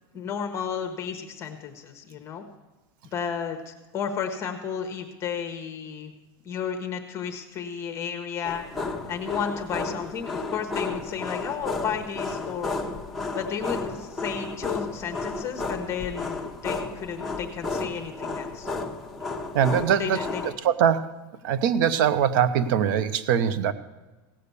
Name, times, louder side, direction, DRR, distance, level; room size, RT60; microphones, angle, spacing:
voice 1, 0.1-2.4 3.0-6.1 6.4-8.6 9.1-12.8 13.3-18.7 19.8-20.4, left 7 dB, 25° left, 4 dB, 0.9 m, -33 dB
sound 1, 8.4-20.5, left 3 dB, ahead, 0.9 m, -33 dB
voice 2, 19.5-20.2 20.6-21.1 21.4-23.7, right 8 dB, 60° right, 14 dB, 0.7 m, -22 dB
16.5 x 6.7 x 6.9 m, 1.2 s
supercardioid pair, 165°, 12 cm